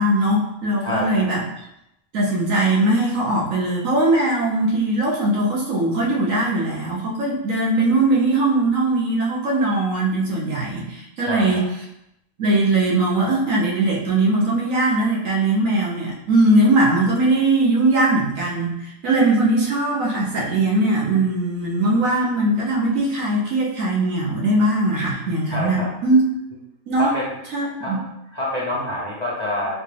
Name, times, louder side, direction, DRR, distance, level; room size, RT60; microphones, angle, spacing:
voice 1, 0.0-1.4 2.1-11.7 12.4-26.3 26.9-27.1 27.5-28.0, right 2 dB, 75° right, -3 dB, 1.3 m, -20 dB
voice 2, 0.8-1.3 11.3-11.6 25.5-25.9 27.0-27.3 27.8-29.8, left 1 dB, 40° left, -5 dB, 0.6 m, -27 dB
4.7 x 2.4 x 3.3 m, 0.81 s
omnidirectional pair, 1.4 m